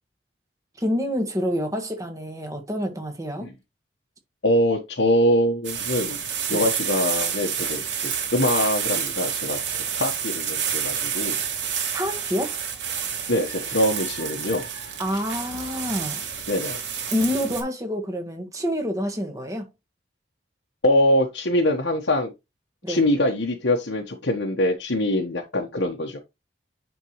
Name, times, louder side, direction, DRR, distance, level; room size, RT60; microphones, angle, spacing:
voice 1, 0.8-3.5 6.5-6.6 11.9-12.5 15.0-16.2 17.1-19.7 22.8-23.0, equal, 20° right, 1.5 m, -27 dB
voice 2, 4.4-6.2 6.5-9.6 9.9-11.4 13.3-14.7 16.5-16.8 20.8-22.3 22.9-26.2, left 1 dB, 85° left, 1.3 m, -23 dB
sound 1, 5.6-17.6, right 7 dB, 80° right, 2.6 m, -29 dB
9.9 x 4.5 x 3.1 m
head